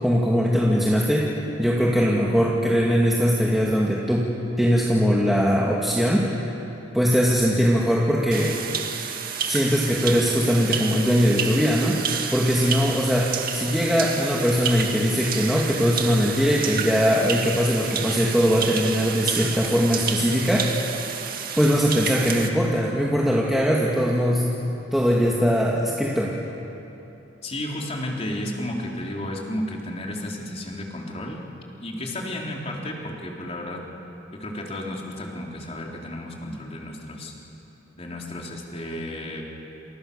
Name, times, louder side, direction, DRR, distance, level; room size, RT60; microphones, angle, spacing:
voice 1, 0.0-1.3 1.6-4.3 4.6-6.3 6.9-8.6 9.5-12.0 12.3-20.7 21.6-24.5 24.9-26.4, equal, ahead, -4 dB, 2.4 m, -21 dB
sound 1, 8.3-22.5, right 7 dB, 50° right, 2.0 m, -30 dB
voice 2, 27.4-31.4 31.8-33.8 34.4-37.3 38.0-39.4, left 1 dB, 35° left, -1 dB, 4.0 m, -32 dB
29.5 x 28.0 x 7.1 m, 3.0 s
head